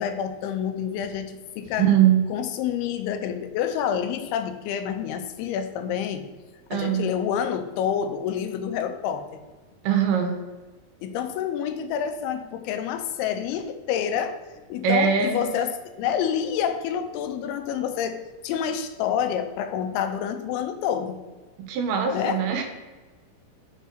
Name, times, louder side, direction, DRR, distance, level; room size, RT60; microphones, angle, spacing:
voice 1, 0.0-1.9 2.3-6.2 6.7-9.4 11.0-14.4 14.7-18.2 18.4-21.2 22.1-22.4, left 8 dB, 85° left, 8 dB, 2.6 m, -28 dB
voice 2, 1.8-2.2 6.7-7.1 9.8-10.4 14.8-15.5 21.7-22.6, right 8 dB, 85° right, 4 dB, 2.7 m, -21 dB
6.9 x 3.6 x 4.4 m, 1.3 s
omnidirectional pair, 4.4 m